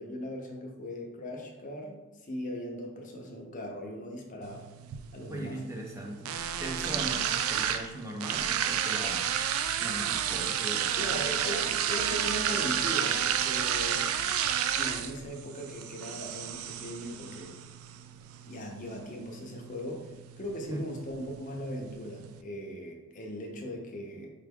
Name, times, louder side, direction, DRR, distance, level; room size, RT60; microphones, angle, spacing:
voice 1, 0.0-4.6 5.1-5.6 6.9-7.0 11.0-14.1 14.8-17.6 18.4-24.3, equal, 40° left, 1 dB, 0.6 m, -39 dB
sound 1, 4.4-22.4, right 9 dB, 80° right, 0.3 m, -32 dB
voice 2, 5.3-6.3 6.6-9.3 9.8-11.3 20.7-20.9, right 1 dB, 15° right, -1 dB, 0.4 m, -39 dB
4.8 x 2.3 x 3.4 m, 1.1 s
head